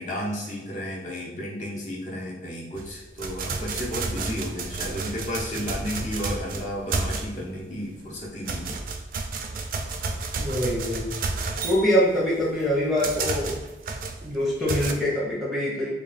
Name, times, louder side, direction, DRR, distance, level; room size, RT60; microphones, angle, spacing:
voice 1, 0.0-8.8, equal, 45° left, -5 dB, 1.0 m, -33 dB
sound 1, 2.8-7.6 8.0-14.9, right 3 dB, 50° right, 0.4 m, -31 dB
voice 2, 10.4-11.1 11.6-13.6 14.2-15.9, equal, ahead, -5 dB, 0.7 m, -24 dB
3.2 x 2.4 x 4.0 m, 1.1 s
head